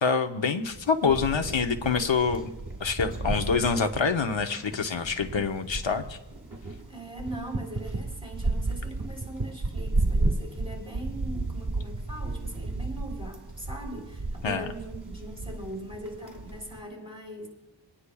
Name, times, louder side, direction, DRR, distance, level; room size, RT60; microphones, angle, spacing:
voice 1, 0.0-2.5 2.8-6.2 14.4-14.7, left 5 dB, 85° left, 7 dB, 0.8 m, -26 dB
sound 1, 0.6-16.8, right 2 dB, 45° right, 1.6 m, -33 dB
voice 2, 6.9-17.5, right 1 dB, 10° right, -1 dB, 3.4 m, -40 dB
26.5 x 9.8 x 2.3 m, 1.1 s
wide cardioid pair, 45°, 44 cm